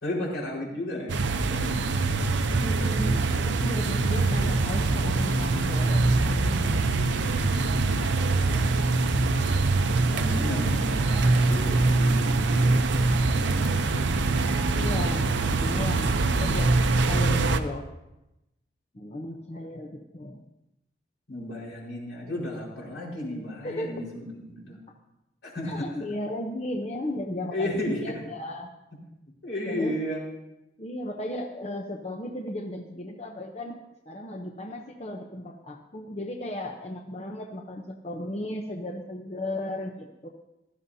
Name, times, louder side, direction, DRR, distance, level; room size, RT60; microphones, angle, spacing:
voice 1, 0.0-1.6 8.0-9.3 10.1-12.7 13.3-14.2 16.2-16.6 19.2-19.4 21.3-24.8 25.4-25.8 27.5-28.2 29.4-30.2, left 1 dB, 85° left, -4 dB, 4.6 m, -34 dB
sound 1, 1.1-17.6, right 3 dB, 70° right, 0.6 m, -24 dB
voice 2, 2.6-6.9 14.7-16.7 17.1-17.8 18.9-20.4 23.6-24.0 25.6-28.7 29.7-29.9 30.8-33.8 34.1-40.3, left 1 dB, 35° left, 2 dB, 0.7 m, -35 dB
16.5 x 13.0 x 2.7 m, 0.93 s
head